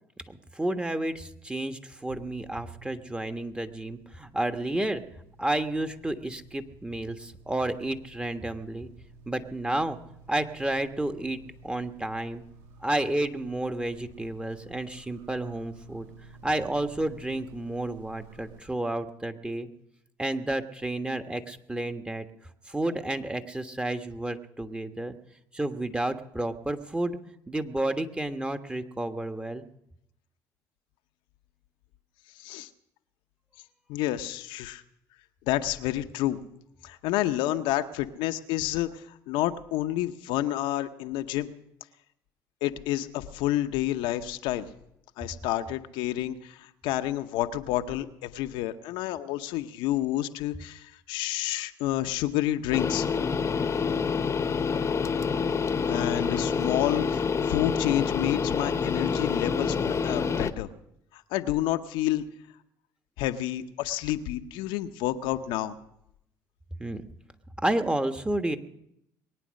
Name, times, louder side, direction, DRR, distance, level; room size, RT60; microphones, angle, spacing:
voice 1, 0.3-5.0 5.4-8.9 9.3-10.0 10.3-12.4 12.8-16.1 16.4-19.7 20.2-22.3 22.7-25.1 25.5-29.7 66.8-67.0 67.6-68.6, right 1 dB, 10° right, 7 dB, 1.4 m, -31 dB
sound 1, 2.1-18.6, right 3 dB, 80° right, 1.5 m, -52 dB
voice 2, 32.4-32.7 33.9-34.8 35.5-36.4 36.8-41.5 42.6-44.7 45.2-53.1 55.9-60.7 61.1-62.2 63.2-65.7, left 14 dB, 75° left, 8 dB, 0.9 m, -29 dB
sound 2, 52.7-60.5, left 5 dB, 35° left, 1.0 m, -27 dB
22.0 x 9.3 x 6.4 m, 0.80 s
hypercardioid pair, 65°, 9 cm